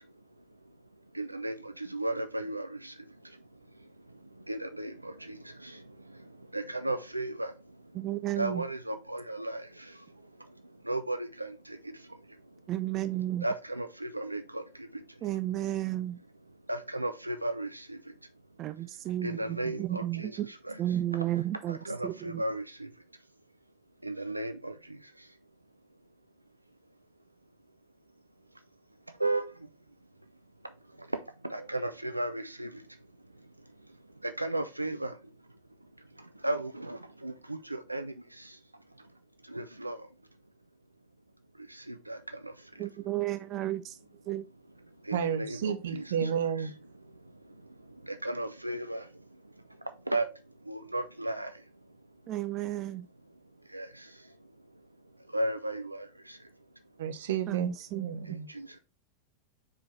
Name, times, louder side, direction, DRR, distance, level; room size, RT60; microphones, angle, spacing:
voice 1, 1.1-2.9 4.5-5.4 5.6-5.7 6.5-7.5 8.4-9.7 10.9-11.8 13.4-14.6 16.7-18.0 19.2-20.3 20.7-20.8 21.7-22.9 24.0-24.7 29.2-29.5 31.4-32.7 34.2-35.1 36.4-38.1 39.5-40.0 41.9-42.2 45.1-46.3 48.2-49.0 50.1-50.2 50.7-51.5 53.7-53.9 55.3-56.1 58.5-58.7, right 2 dB, 85° right, 0.5 m, -34 dB
voice 2, 7.9-8.6 12.7-13.4 15.2-16.2 18.6-19.4 19.8-20.5 20.8-22.4 42.8-44.0 44.3-44.4 52.3-53.1 57.5-58.1, right 13 dB, 35° right, 0.3 m, -32 dB
voice 3, 45.1-46.7 57.0-58.5, right 8 dB, 60° right, 0.9 m, -32 dB
4.9 x 4.7 x 4.3 m
figure-of-eight pair, 90°, 0 cm